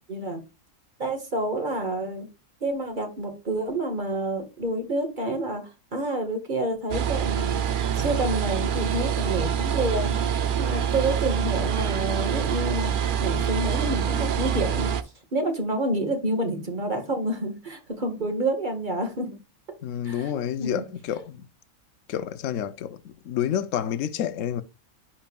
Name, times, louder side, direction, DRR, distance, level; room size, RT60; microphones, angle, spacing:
voice 1, 0.1-0.4 1.0-2.3 2.6-5.6 5.9-7.6 8.0-10.1 10.6-12.9 13.2-14.9 15.3-19.3 20.0-20.8, right 1 dB, 30° right, 1.7 m, -28 dB
sound 1, 6.9-15.0, right 8 dB, 70° right, 0.4 m, -25 dB
voice 2, 19.8-21.5 22.1-24.6, left 10 dB, 65° left, 1.0 m, -29 dB
10.5 x 4.5 x 2.3 m
omnidirectional pair, 1.6 m